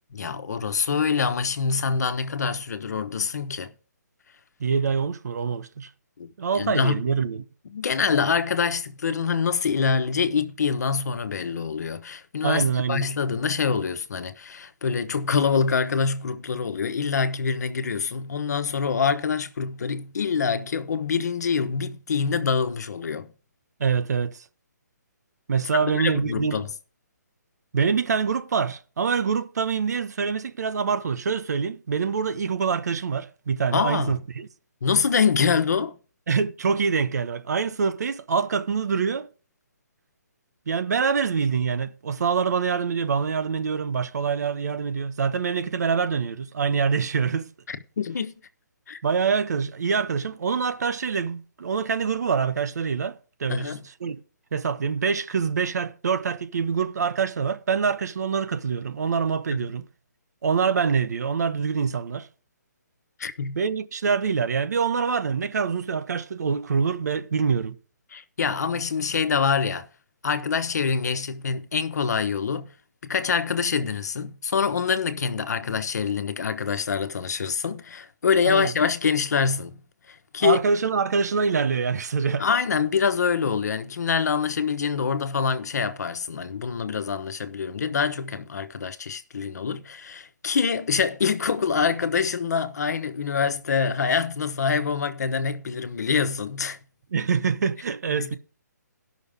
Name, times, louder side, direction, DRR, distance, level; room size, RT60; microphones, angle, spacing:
voice 1, 0.1-3.7 6.2-6.3 6.5-7.0 7.7-12.6 12.9-23.3 25.8-26.7 33.7-34.2 34.8-35.9 47.7-48.3 48.9-49.0 53.5-53.9 59.5-59.7 63.2-63.6 68.1-69.9 70.2-72.7 73.0-79.7 80.1-80.6 82.4-96.8 98.1-98.4, left 6 dB, 65° left, 1.2 m, -25 dB
voice 2, 4.6-5.9 6.4-7.4 12.4-13.1 23.8-24.4 25.5-26.7 27.7-34.5 36.3-39.3 40.7-47.5 49.0-53.7 54.0-54.2 54.5-59.9 60.4-62.3 63.5-67.8 78.4-78.7 80.4-82.4 97.1-98.4, right 6 dB, 65° right, 1.1 m, -25 dB
17.0 x 6.2 x 3.6 m
hypercardioid pair, 160°, 10 cm